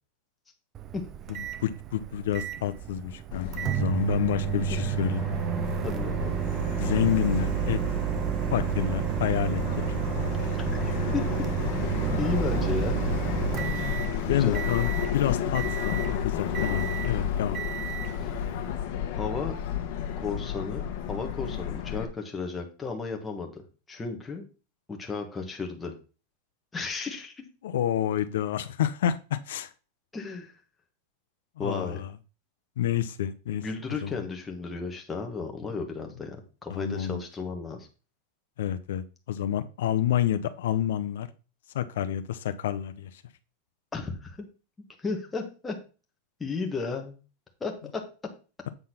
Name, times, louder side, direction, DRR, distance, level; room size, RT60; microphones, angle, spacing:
Microwave oven, 0.7-18.7, right 12 dB, 20° right, 0.3 m, -31 dB
voice 1, 1.3-5.2 6.8-7.8 8.5-9.9 14.3-17.6 27.6-29.7 31.6-32.1 32.8-34.2 36.7-37.2 38.6-41.3 41.7-43.2, left 10 dB, 80° left, 11 dB, 0.6 m, -29 dB
Subway metro underground, 3.3-22.0, left 9 dB, 45° left, 1.2 m, -32 dB
voice 2, 5.8-6.4 10.7-11.5 12.2-13.1 14.3-14.7 18.2-18.3 19.2-19.5 20.2-23.6 23.9-24.4 24.9-25.9 26.7-27.3 30.1-30.5 31.6-32.0 33.6-36.4 36.6-37.9 43.9-44.5 45.0-45.8 46.4-47.1 47.6-48.0, left 4 dB, 10° left, 2 dB, 1.1 m, -34 dB
8.0 x 3.8 x 5.9 m, 0.34 s
supercardioid pair, 175°, 0 cm